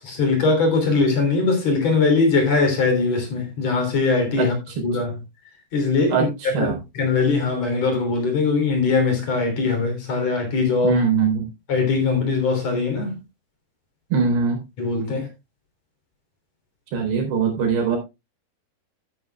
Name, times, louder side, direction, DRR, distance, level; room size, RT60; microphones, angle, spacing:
voice 1, 0.0-4.5 4.8-5.2 5.7-11.0 11.7-13.2 14.8-15.3, left 4 dB, 45° left, 4.1 m, -21 dB
voice 2, 6.1-6.8 10.8-11.5 14.1-14.6 16.9-18.0, right 5 dB, 80° right, 5.8 m, -21 dB
13.0 x 10.0 x 2.3 m
omnidirectional pair, 4.6 m